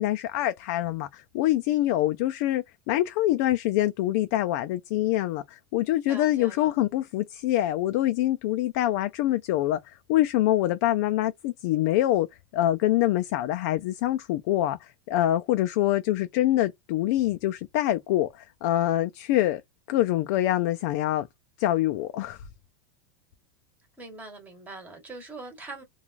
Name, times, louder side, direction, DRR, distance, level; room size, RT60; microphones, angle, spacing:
voice 1, 0.0-12.3 12.5-19.6 19.9-21.3 21.6-22.4, left 14 dB, 50° left, 0.3 m, -25 dB
voice 2, 6.1-6.7 24.0-25.8, right 3 dB, 15° right, 1.1 m, -42 dB
3.0 x 2.3 x 2.4 m
supercardioid pair, 155°, 11 cm